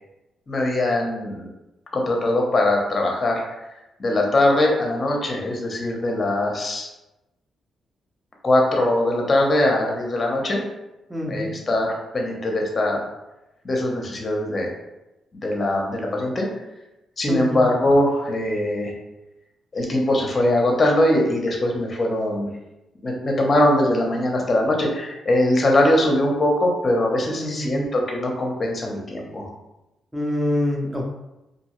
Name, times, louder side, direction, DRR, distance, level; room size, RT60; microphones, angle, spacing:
voice 1, 0.5-1.5 1.9-3.4 4.0-6.9 8.4-10.6 11.3-13.0 13.6-14.7 15.4-16.5 17.2-18.9 19.7-22.5 23.0-29.5, left 1 dB, 35° left, 0 dB, 0.7 m, -21 dB
voice 2, 11.1-11.5 17.3-17.6 27.4-27.8 30.1-31.0, left 1 dB, 10° right, -1 dB, 0.6 m, -25 dB
2.6 x 2.2 x 3.0 m, 0.97 s
cardioid pair, 95°, 0 cm